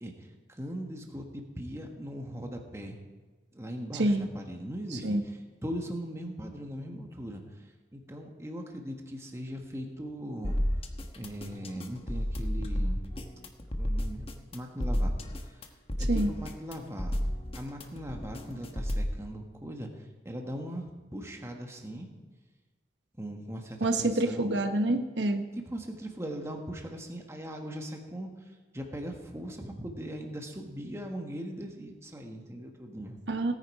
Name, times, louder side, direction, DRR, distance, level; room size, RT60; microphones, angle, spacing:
voice 1, 0.0-3.0 3.5-10.6 11.1-13.0 13.8-15.6 16.0-17.1 17.5-22.1 23.2-24.6 25.6-33.2, equal, 15° right, 2 dB, 1.4 m, -40 dB
sound 1, 10.4-19.2, equal, 35° left, 1.1 m, -32 dB
voice 2, 23.8-25.4 33.3-33.5, right 1 dB, 85° right, 7 dB, 1.0 m, -27 dB
17.5 x 9.4 x 4.8 m, 1.3 s
head